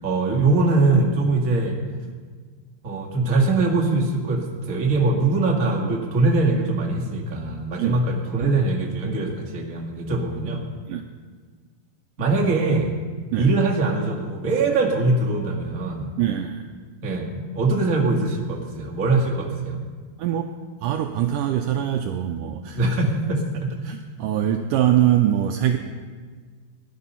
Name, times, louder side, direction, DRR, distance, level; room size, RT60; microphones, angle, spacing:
voice 1, 0.0-1.8 2.8-10.6 12.2-12.9 13.4-16.1 17.0-19.8 22.7-23.7, right 3 dB, 30° right, 0 dB, 1.7 m, -22 dB
voice 2, 16.2-16.7 20.2-20.5 20.8-22.8 23.8-25.8, right 11 dB, 85° right, 5 dB, 1.9 m, -23 dB
19.0 x 11.5 x 5.6 m, 1.5 s
omnidirectional pair, 4.5 m